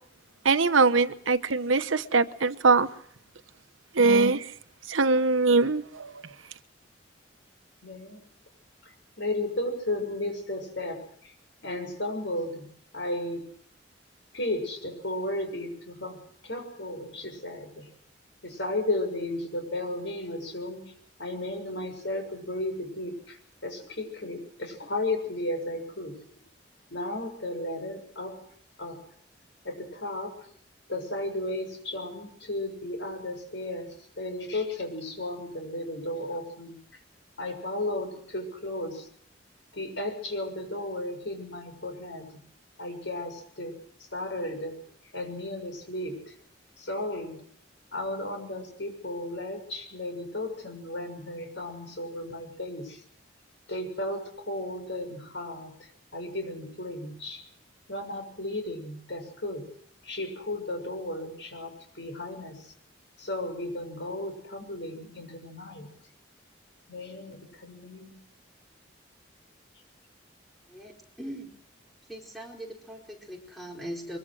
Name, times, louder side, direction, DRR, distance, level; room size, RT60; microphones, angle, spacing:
voice 1, 0.4-2.9 3.9-4.5 4.9-6.1, right 4 dB, 85° right, 11 dB, 1.1 m, -22 dB
voice 2, 7.8-8.2 8.8-8.9 9.2-11.3 11.6-12.7 12.9-13.5 14.3-16.2 16.4-17.9 18.4-20.8 21.2-23.4 23.6-26.2 26.9-28.4 28.8-29.0 29.6-30.3 30.9-36.8 37.4-39.1 39.7-42.4 42.8-43.8 44.1-44.7 45.1-46.3 46.8-47.4 47.9-53.0 53.7-57.4 57.9-59.7 60.0-62.7 63.2-65.9 66.9-68.2, left 1 dB, 65° left, 5 dB, 6.9 m, -34 dB
voice 3, 70.7-71.5 72.1-74.2, equal, ahead, 0 dB, 4.3 m, -40 dB
23.5 x 23.0 x 6.3 m, 0.64 s
head